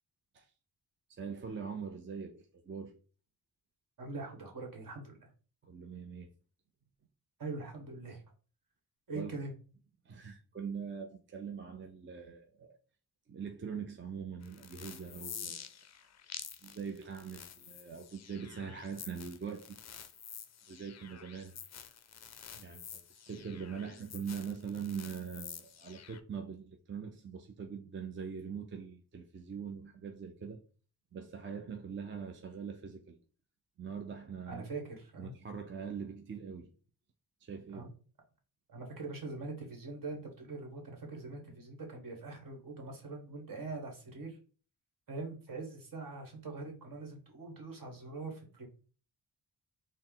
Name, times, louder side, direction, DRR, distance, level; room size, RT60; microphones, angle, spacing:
voice 1, 1.1-3.0 5.6-6.3 9.1-9.3 10.1-12.8 13.3-15.7 16.6-19.8 20.7-21.6 22.5-30.6 31.1-33.2 33.8-34.6 35.2-36.7 37.4-37.9, right 6 dB, 30° right, 0.4 m, -42 dB
voice 2, 4.0-5.1 7.4-8.2 9.1-9.5 34.5-35.3 37.7-37.9 38.7-44.4 45.1-48.7, right 3 dB, 55° right, 1.3 m, -43 dB
sound 1, 14.4-26.2, left 8 dB, 45° left, 0.4 m, -49 dB
4.2 x 2.1 x 3.7 m
wide cardioid pair, 105°, 40 cm